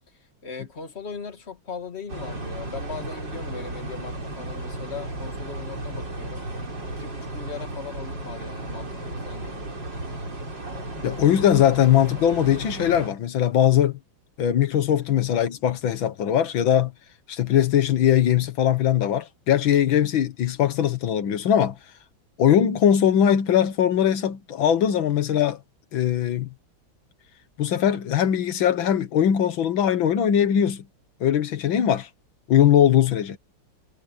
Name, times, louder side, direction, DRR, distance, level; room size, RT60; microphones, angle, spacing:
voice 1, 0.1-6.5 6.9-9.8, left 5 dB, 35° left, 2.3 m, -39 dB
sound 1, 2.1-13.1, right 2 dB, 65° right, 5.8 m, -34 dB
voice 2, 11.0-14.0 14.4-16.9 17.3-21.8 22.4-25.6 25.9-26.5 27.6-30.8 31.2-32.1 32.5-33.4, left 10 dB, 85° left, 2.0 m, -20 dB
omnidirectional pair, 2.1 m